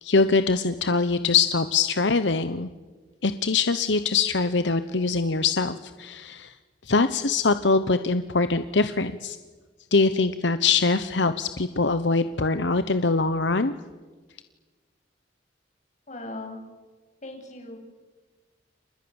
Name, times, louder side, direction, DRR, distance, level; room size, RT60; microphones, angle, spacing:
voice 1, 0.0-2.7 3.2-6.5 6.9-9.4 9.9-13.7, left 4 dB, 75° left, 11 dB, 1.1 m, -23 dB
voice 2, 16.1-16.6 17.2-17.8, left 2 dB, 40° left, 2 dB, 8.0 m, -38 dB
30.0 x 27.5 x 7.3 m, 1.4 s
head